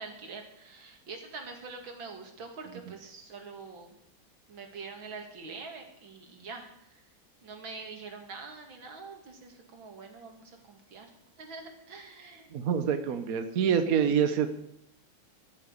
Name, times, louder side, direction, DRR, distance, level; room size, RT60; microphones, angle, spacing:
voice 1, 0.0-3.9 4.5-7.0 7.4-11.1 11.4-12.7, right 4 dB, 90° right, 3 dB, 3.0 m, -45 dB
voice 2, 12.5-14.5, right 7 dB, 55° right, 8 dB, 1.4 m, -26 dB
13.0 x 9.0 x 8.2 m, 0.74 s
omnidirectional pair, 2.1 m